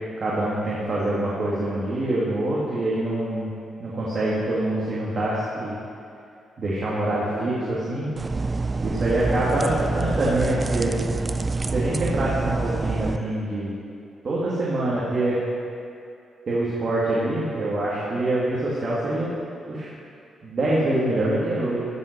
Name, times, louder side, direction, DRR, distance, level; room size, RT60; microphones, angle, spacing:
voice 1, 0.2-3.5 3.8-5.8 6.6-8.1 8.8-10.9 11.7-13.7 14.2-15.4 16.5-19.3 19.7-19.9 20.4-21.8, right 1 dB, 40° right, -7 dB, 2.1 m, -25 dB
sound 1, 8.2-13.2, right 3 dB, 25° right, 0.4 m, -27 dB
15.0 x 5.5 x 6.0 m, 2.5 s
cardioid pair, 140°, 0 cm